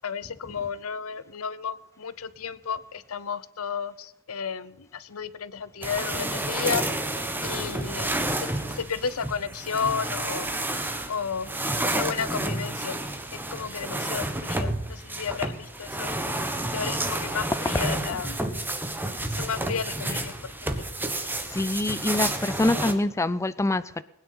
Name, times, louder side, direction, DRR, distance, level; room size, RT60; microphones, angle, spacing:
voice 1, 0.0-6.8 7.4-10.5 11.1-11.5 11.9-13.0 13.3-16.2 16.7-18.4 19.2-20.3 20.7-20.8, left 6 dB, 80° left, 16 dB, 0.7 m, -32 dB
sound 1, 5.8-22.9, right 1 dB, 10° right, 1.3 m, -30 dB
voice 2, 21.5-24.0, left 2 dB, 15° left, 14 dB, 0.4 m, -25 dB
20.5 x 9.6 x 5.6 m, 0.92 s
head